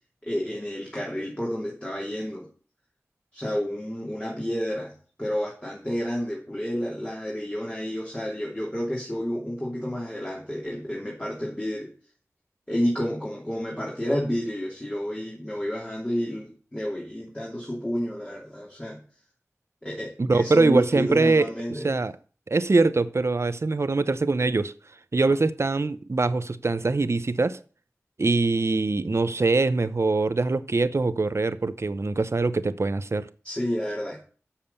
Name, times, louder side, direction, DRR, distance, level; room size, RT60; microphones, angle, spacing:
voice 1, 0.2-2.5 3.3-11.9 12.7-19.0 19.8-22.0 33.4-34.2, equal, 20° left, 2.7 m, -30 dB
voice 2, 20.2-22.1 22.5-24.7 25.1-27.6 28.2-33.3, right 3 dB, 60° right, 0.7 m, -23 dB
7.2 x 7.1 x 6.7 m
wide cardioid pair, 40°, 5 cm